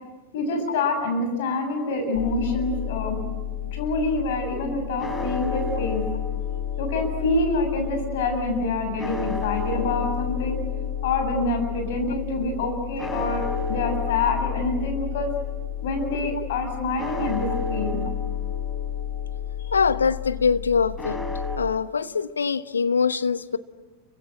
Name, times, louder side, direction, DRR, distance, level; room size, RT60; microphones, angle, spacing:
voice 1, 0.3-3.2 3.7-6.0 6.8-10.6 11.0-15.3 15.8-18.0 19.6-19.7, left 2 dB, 55° left, 6 dB, 7.3 m, -26 dB
sound 1, 2.1-21.6, left 7 dB, 10° left, 3.3 m, -30 dB
voice 2, 19.7-21.2 21.6-23.6, left 5 dB, 75° left, 13 dB, 1.1 m, -23 dB
29.0 x 24.5 x 7.9 m, 1.2 s
figure-of-eight pair, 90°, 0 cm